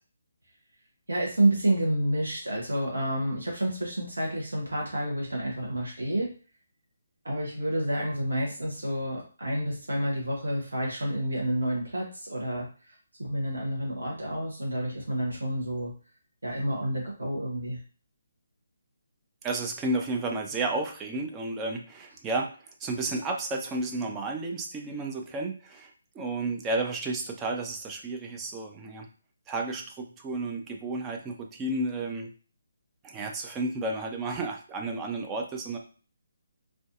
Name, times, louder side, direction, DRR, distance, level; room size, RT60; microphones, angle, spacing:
voice 1, 1.1-6.3 7.2-12.7 13.2-15.9 16.4-17.8, right 1 dB, 70° right, -2 dB, 0.7 m, -29 dB
voice 2, 19.4-22.5 22.8-29.1 29.5-32.3 33.0-35.8, right 2 dB, 15° right, 2 dB, 0.3 m, -32 dB
2.5 x 2.2 x 2.3 m, 0.38 s
figure-of-eight pair, 140°, 0 cm